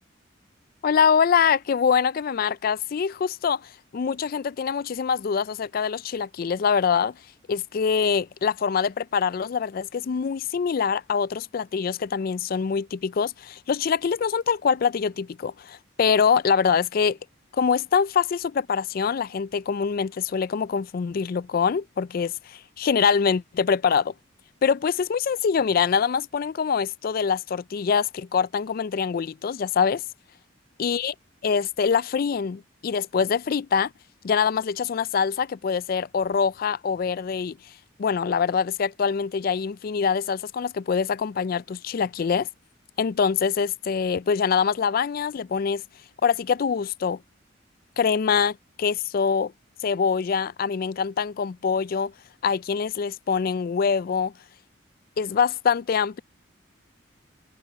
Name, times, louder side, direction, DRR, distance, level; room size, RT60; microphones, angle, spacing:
voice 1, 0.8-7.2 7.5-17.2 17.5-24.1 24.6-30.0 30.8-31.1 31.4-33.9 34.2-37.6 38.0-42.5 43.0-45.8 46.2-47.2 48.0-49.5 49.8-52.1 52.4-54.3 55.2-56.2, left 6 dB, 45° left, 0.3 m, -24 dB
head